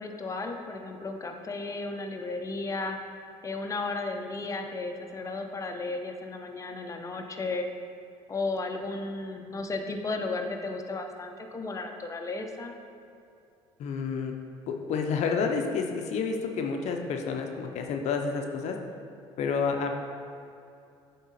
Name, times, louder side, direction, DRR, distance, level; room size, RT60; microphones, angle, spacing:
voice 1, 0.0-3.0 3.4-7.7 8.3-12.8, left 3 dB, 25° left, 4 dB, 0.7 m, -34 dB
voice 2, 13.8-14.3 14.7-18.8 19.4-19.9, left 5 dB, 60° left, 3 dB, 0.7 m, -29 dB
8.1 x 3.7 x 4.1 m, 2.6 s
supercardioid pair, 80°, 13 cm